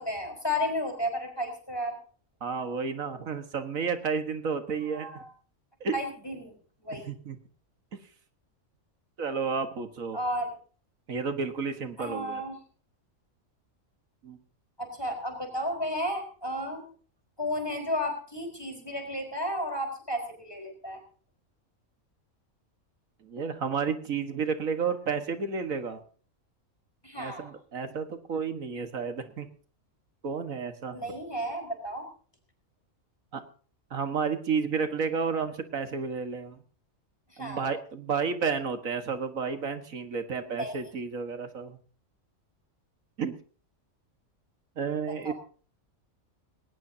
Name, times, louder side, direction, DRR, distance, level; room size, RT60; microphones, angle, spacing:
voice 1, 0.0-2.0 4.8-5.3 5.9-6.5 6.8-7.1 10.1-10.5 12.0-12.5 14.8-16.9 17.4-21.0 27.0-27.5 30.9-32.1 37.3-37.7 40.5-40.8 45.2-45.3, equal, 20° left, 4 dB, 4.8 m, -33 dB
voice 2, 2.4-5.2 5.8-6.0 6.9-7.4 9.2-10.2 11.1-12.4 14.2-14.4 23.2-26.0 27.2-29.5 30.2-31.0 33.3-33.4 33.9-36.6 37.4-41.8 43.2-43.4 44.8-45.3, right 5 dB, 85° right, 8 dB, 2.0 m, -31 dB
20.0 x 19.0 x 2.8 m, 0.41 s
omnidirectional pair, 1.4 m